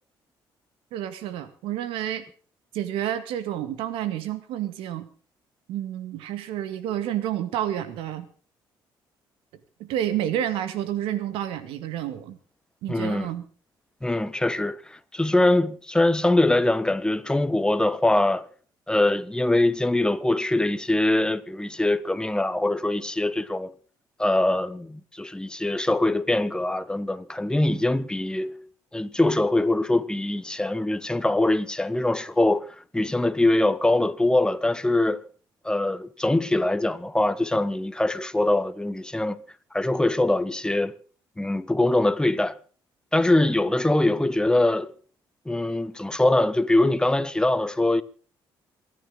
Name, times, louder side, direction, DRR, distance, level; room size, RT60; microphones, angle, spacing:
voice 1, 0.9-2.2 2.7-5.1 5.7-8.3 9.8-12.4 12.8-13.4, right 11 dB, 85° right, 2.0 m, -29 dB
voice 2, 12.9-13.3 14.0-18.5 18.9-23.7 24.2-28.5 28.9-35.2 35.6-39.4 39.7-40.9 41.4-42.6 43.1-44.9 45.4-48.0, left 2 dB, 10° left, 1.3 m, -23 dB
27.5 x 9.9 x 3.8 m
cardioid pair, 80°, 9 cm